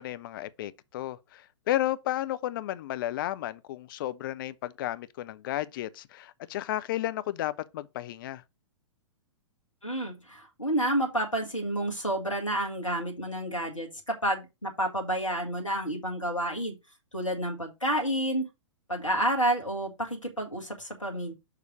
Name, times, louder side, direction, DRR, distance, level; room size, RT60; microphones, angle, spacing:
voice 1, 0.0-8.4, left 14 dB, 45° left, 0.6 m, -33 dB
voice 2, 9.8-16.8 17.1-18.5 18.9-21.3, right 1 dB, 90° left, 1.5 m, -30 dB
6.6 x 3.3 x 6.1 m
figure-of-eight pair, 110°, 16 cm